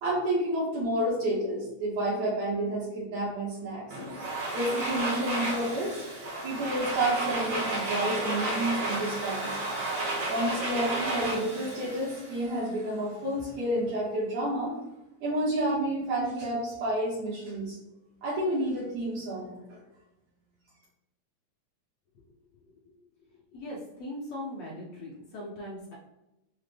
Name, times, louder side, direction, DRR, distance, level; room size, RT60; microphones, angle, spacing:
voice 1, 0.0-3.8 4.5-6.0 6.4-9.6 10.3-14.8 15.2-17.8 18.2-19.8, right 1 dB, 70° right, -8 dB, 2.3 m, -30 dB
Domestic sounds home sounds, 3.9-12.8, right 2 dB, 90° right, 3.0 m, -32 dB
voice 2, 23.3-25.9, left 1 dB, 75° left, -4 dB, 1.2 m, -40 dB
5.5 x 2.1 x 3.3 m, 0.94 s
omnidirectional pair, 3.4 m